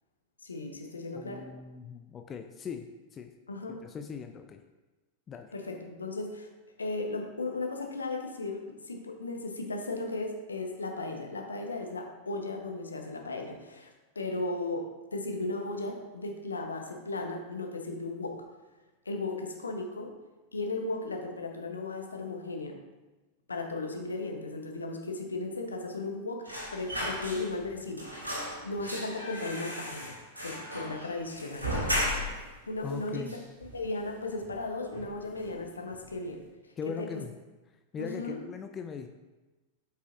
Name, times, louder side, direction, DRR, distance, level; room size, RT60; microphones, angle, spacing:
voice 1, 0.4-1.5 3.5-3.8 5.5-6.5 6.8-13.9 14.1-18.4 19.0-20.1 20.5-22.8 23.5-26.5 26.7-28.1 28.6-31.9 32.7-33.3 33.7-36.4 37.0-37.1 38.0-38.4, left 2 dB, 75° left, 2 dB, 1.0 m, -36 dB
voice 2, 1.1-3.3 3.7-4.6 5.3-5.5 32.8-33.3 36.8-37.3 37.9-39.1, left 6 dB, 25° left, 6 dB, 0.4 m, -40 dB
sound 1, 26.4-27.7 28.0-32.5 32.9-33.0 33.3-34.1 34.4-34.6 34.9-35.6 35.9-36.1, equal, 80° right, 1.7 m, -35 dB
7.9 x 5.6 x 2.5 m, 1.2 s
figure-of-eight pair, 90°, 0 cm